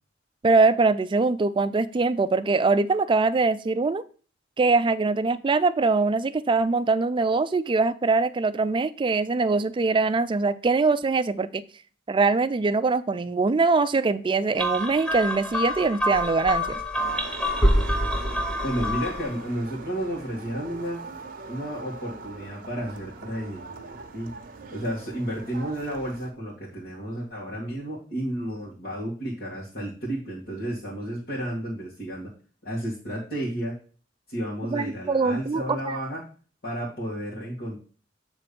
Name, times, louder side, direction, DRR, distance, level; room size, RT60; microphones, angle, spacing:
voice 1, 0.4-4.0 4.6-11.6 12.1-16.8 34.7-36.0, right 3 dB, 25° right, 0.4 m, -23 dB
sound 1, 14.6-19.3, equal, 5° left, 0.8 m, -26 dB
sound 2, 16.9-26.3, right 3 dB, 50° right, 0.9 m, -42 dB
voice 2, 18.6-21.0 21.5-23.7 24.1-24.3 24.7-32.3 32.6-33.8 34.3-36.3 36.6-37.8, right 1 dB, 55° left, 1.8 m, -32 dB
8.3 x 3.3 x 5.2 m
head